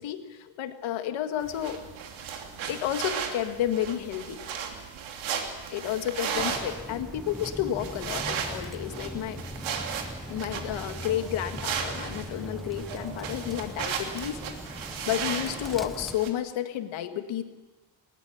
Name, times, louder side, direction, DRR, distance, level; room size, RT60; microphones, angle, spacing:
voice 1, 0.0-1.8 2.7-4.4 5.7-9.4 10.3-14.4 14.6-17.4, left 11 dB, 90° left, 7 dB, 1.9 m, -31 dB
sound 1, 1.4-16.3, right 7 dB, 85° right, 3.1 m, -36 dB
Bird, 6.3-16.2, equal, ahead, 0.6 m, -40 dB
20.5 x 20.0 x 7.1 m, 1.2 s
cardioid pair, 175°, 46 cm